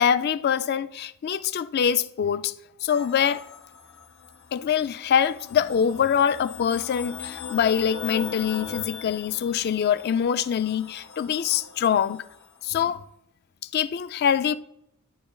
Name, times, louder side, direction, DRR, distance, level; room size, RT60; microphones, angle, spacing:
voice 1, 0.0-2.5 2.8-3.4 4.5-12.2 12.6-13.0 13.7-14.6, left 8 dB, 50° left, 0.3 m, -24 dB
sound 1, 2.9-12.6, left 6 dB, 85° left, 0.7 m, -41 dB
10.5 x 5.0 x 2.3 m
head